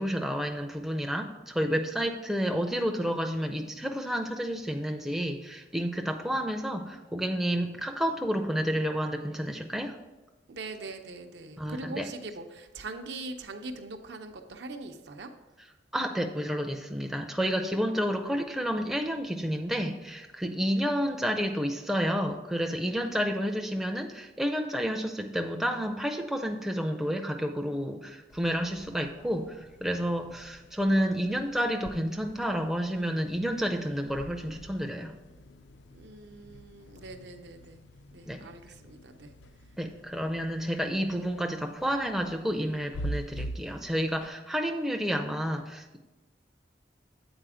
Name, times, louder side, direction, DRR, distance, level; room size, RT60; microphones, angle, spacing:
voice 1, 0.0-10.0 11.6-12.1 15.9-35.1 38.3-38.4 39.8-46.0, equal, ahead, 3 dB, 0.4 m, -30 dB
voice 2, 10.5-15.3 35.9-37.8 38.1-39.4, right 2 dB, 75° right, 6 dB, 0.6 m, -42 dB
sound 1, 28.3-44.3, right 1 dB, 85° left, 0.4 m, -45 dB
7.9 x 4.2 x 4.9 m, 1.1 s
head